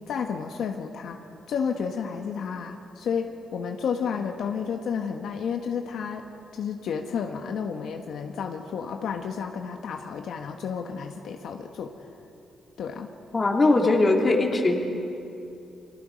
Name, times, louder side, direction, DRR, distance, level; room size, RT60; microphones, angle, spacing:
voice 1, 0.1-1.2 1.5-6.3 6.5-11.9 12.8-13.1, left 6 dB, 70° left, 4 dB, 1.3 m, -31 dB
voice 2, 13.3-14.8, left 2 dB, 25° left, 1 dB, 2.5 m, -20 dB
29.5 x 24.0 x 5.2 m, 2.7 s
cardioid pair, 155°, 0 cm